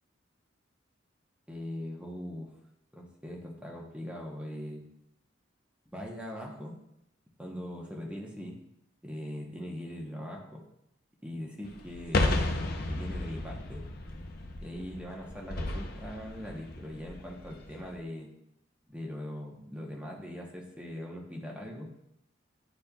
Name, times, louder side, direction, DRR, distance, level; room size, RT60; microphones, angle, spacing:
voice 1, 1.5-2.5 2.9-4.8 5.9-6.8 7.4-8.6 9.0-10.6 11.2-12.6 12.9-13.9 14.6-18.3 18.9-21.9, equal, 5° right, -1 dB, 0.9 m, -41 dB
sound 1, 11.6-18.0, left 2 dB, 55° left, 0.6 m, -33 dB
10.0 x 4.2 x 2.3 m, 0.81 s
head